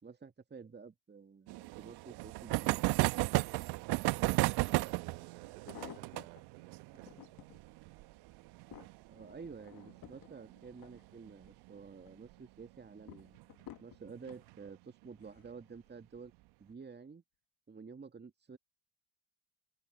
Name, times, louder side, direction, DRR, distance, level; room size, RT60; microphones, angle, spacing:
voice 1, 0.0-2.9 9.1-13.3 13.8-16.3 16.6-17.2 17.7-18.6, right 5 dB, 20° right, 2.4 m, -50 dB
sound 1, 1.5-10.7 10.9-11.0 11.3-11.4 11.7-11.8 13.2-13.4 14.1-14.5, right 22 dB, 60° right, 1.3 m, -34 dB
sound 2, 4.7-4.8 5.4-6.4 6.9-7.6 8.1-11.6 12.0-12.4 13.1-14.4 15.2-15.6 15.9-16.0, left 13 dB, 50° left, 2.3 m, -54 dB
voice 2, 4.7-7.4, right 20 dB, 75° right, 5.1 m, -55 dB
hypercardioid pair, 60°, 44 cm